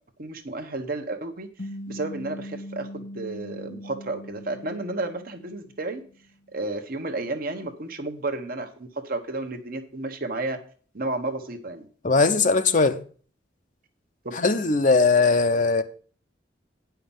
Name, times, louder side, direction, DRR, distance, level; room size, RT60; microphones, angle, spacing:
voice 1, 0.2-1.5 1.9-6.0 6.5-10.6 10.9-11.9 14.2-14.4, right 2 dB, 50° right, 1.1 m, -32 dB
sound 1, 1.6-6.2, equal, 80° left, 2.8 m, -40 dB
voice 2, 12.0-13.0 14.4-15.8, left 4 dB, 45° left, 0.9 m, -20 dB
9.2 x 5.8 x 7.2 m
head